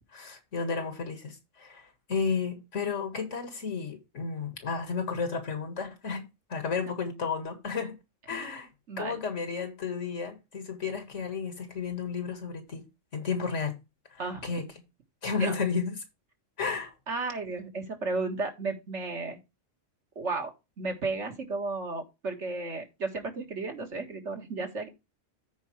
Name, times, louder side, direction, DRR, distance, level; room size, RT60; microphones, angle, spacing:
voice 1, 0.1-8.0 8.3-8.7 9.0-12.9 13.1-13.8 14.1-14.6 15.2-16.0 16.6-16.9, left 5 dB, 75° left, 2.0 m, -32 dB
voice 2, 8.9-9.2 14.2-14.5 15.4-15.6 17.1-19.4 20.2-24.9, right 3 dB, 70° right, 2.0 m, -34 dB
14.0 x 4.7 x 3.1 m
omnidirectional pair, 1.3 m